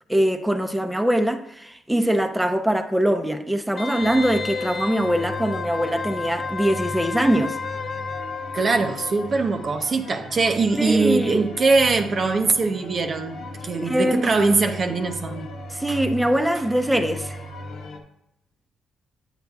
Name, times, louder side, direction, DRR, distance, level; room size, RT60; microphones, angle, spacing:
voice 1, 0.1-7.6 10.8-11.5 13.8-14.3 15.7-17.4, right 1 dB, 5° right, 0.6 m, -22 dB
Wind instrument woodwind instrument, 3.8-9.3 9.6-9.7, left 4 dB, 40° left, 0.4 m, -32 dB
sound 1, 4.0-18.0, left 1 dB, 85° left, 1.2 m, -37 dB
voice 2, 8.5-13.4 13.6-15.5 15.9-16.0, right 3 dB, 45° right, 0.6 m, -22 dB
8.9 x 8.1 x 2.3 m
cardioid pair, 90°, 0 cm